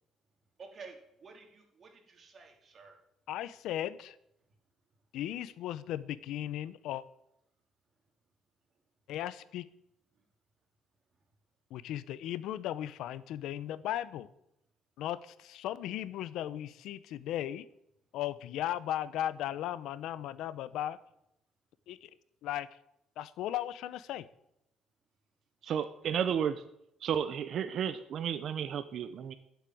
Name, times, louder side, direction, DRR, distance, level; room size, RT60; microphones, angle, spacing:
voice 1, 0.6-3.0 10.2-10.3 25.8-26.3, right 4 dB, 40° right, 2 dB, 3.8 m, -52 dB
voice 2, 3.3-4.2 5.1-7.0 9.1-9.7 11.7-14.3 15.0-17.7 18.1-21.0 21.9-22.1 22.4-22.7 23.2-24.3, left 12 dB, 80° left, 16 dB, 0.9 m, -36 dB
voice 3, 25.6-26.6 27.0-29.4, right 8 dB, 60° right, 11 dB, 0.9 m, -32 dB
13.5 x 8.2 x 9.4 m, 0.80 s
cardioid pair, 110°, 0 cm